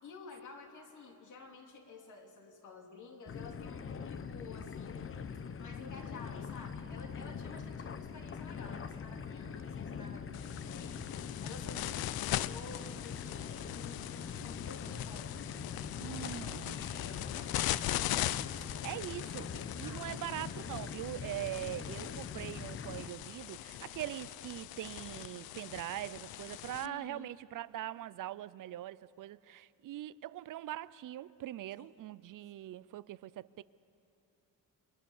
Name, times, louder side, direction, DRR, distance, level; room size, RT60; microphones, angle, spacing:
voice 1, 0.0-5.3 5.6-15.4 16.4-19.5 19.7-20.3 26.8-27.3 31.8-31.9, left 4 dB, 55° left, 3.0 m, -52 dB
sound 1, 3.3-23.1, left 6 dB, 35° left, 0.8 m, -43 dB
sound 2, 10.3-26.9, left 14 dB, 90° left, 0.6 m, -40 dB
voice 2, 16.0-16.8 18.8-33.6, right 14 dB, 65° right, 0.5 m, -42 dB
29.5 x 23.5 x 7.2 m
cardioid pair, 155°, 35 cm